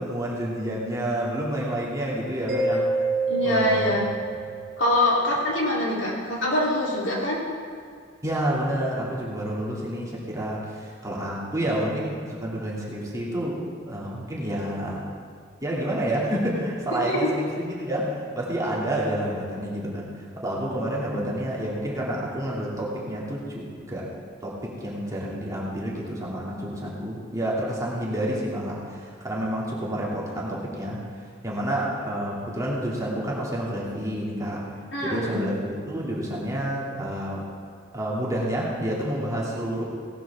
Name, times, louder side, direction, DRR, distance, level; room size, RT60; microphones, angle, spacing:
voice 1, 0.0-3.1 3.4-4.0 8.2-13.6 13.9-15.0 15.6-24.1 24.4-31.0 31.4-34.6 35.0-37.5 37.9-39.8, right 1 dB, 15° right, -5 dB, 2.3 m, -29 dB
Mallet percussion, 2.5-5.0, right 3 dB, 60° right, 2.4 m, -27 dB
voice 2, 3.3-4.0 4.8-7.4 16.9-17.3 21.0-21.2 34.9-35.4, left 1 dB, 70° left, -4 dB, 3.2 m, -24 dB
17.5 x 12.0 x 3.5 m, 2.2 s
head